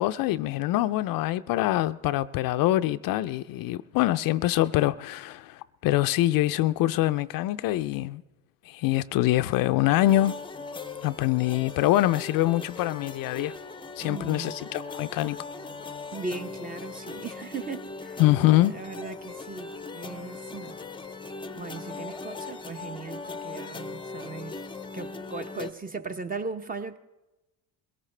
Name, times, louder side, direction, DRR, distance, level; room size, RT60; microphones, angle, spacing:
voice 1, 0.0-8.2 8.7-10.3 11.0-13.6 14.0-15.4 18.2-18.7, left 15 dB, 60° left, 0.5 m, -24 dB
sound 1, 10.0-25.7, left 4 dB, 15° left, 0.6 m, -39 dB
voice 2, 14.0-14.5 16.1-18.2 18.7-20.8 21.5-24.6 24.9-27.0, right 4 dB, 20° right, 0.8 m, -38 dB
21.5 x 17.5 x 3.3 m
supercardioid pair, 95°, 39 cm